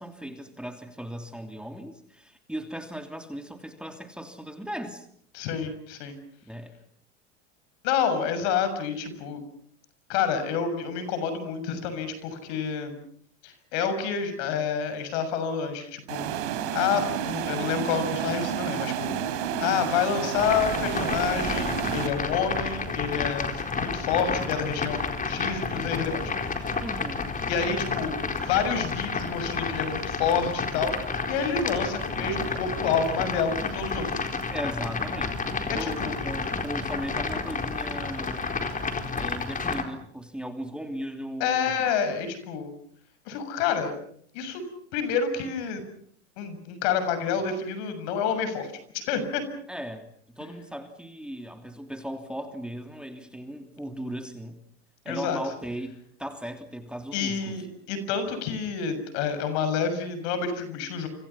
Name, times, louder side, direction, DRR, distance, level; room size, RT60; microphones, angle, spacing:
voice 1, 0.0-5.1 6.5-6.7 26.8-27.3 34.5-38.6 39.1-41.7 49.7-54.6 55.0-57.6, equal, 5° right, 6 dB, 3.0 m, -37 dB
voice 2, 5.3-6.2 7.8-9.4 10.1-13.0 13.4-16.3 16.7-19.1 19.6-26.8 27.5-28.2 28.5-34.2 35.7-36.2 41.4-42.7 43.2-43.9 44.3-44.6 44.9-45.8 46.4-49.4 55.1-55.4 57.1-61.1, left 6 dB, 70° left, 10 dB, 6.8 m, -28 dB
sound 1, 16.1-22.1, right 9 dB, 75° right, 4.1 m, -30 dB
sound 2, 20.4-39.8, left 4 dB, 25° left, 4.2 m, -31 dB
29.5 x 26.5 x 5.8 m, 0.63 s
hypercardioid pair, 95°, 35 cm